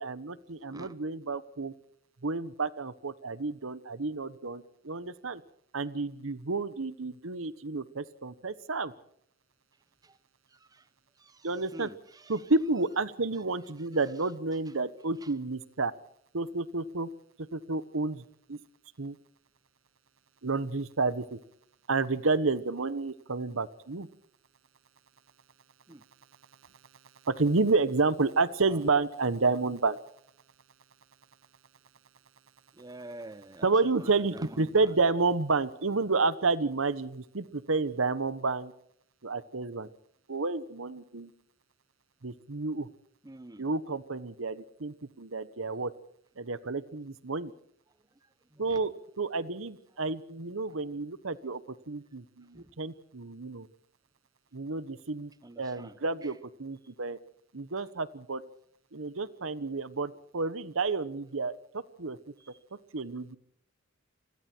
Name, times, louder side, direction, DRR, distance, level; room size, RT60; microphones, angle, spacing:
voice 1, 0.0-1.7 2.2-5.4 5.7-8.9 11.4-11.9 12.3-15.9 16.3-17.1 17.5-18.6 19.0-19.2 20.4-21.4 21.9-24.1 27.2-30.0 33.6-38.7 39.2-39.9 40.3-41.3 42.2-42.9 43.6-45.9 46.4-47.5 48.6-48.9 49.2-51.6 51.9-53.7 54.5-55.3 55.6-57.2 57.5-58.4 58.9-62.2 62.9-63.4, right 3 dB, 70° right, 1.1 m, -30 dB
voice 2, 10.5-10.9 11.2-12.5 13.3-13.4 15.2-15.3 25.9-26.0 28.6-28.8 32.7-34.9 43.2-43.7 48.2-48.8 52.5-52.7 55.4-56.3 57.8-57.9 62.4-62.6, right 2 dB, 20° right, 0.8 m, -48 dB
28.5 x 22.0 x 4.5 m
head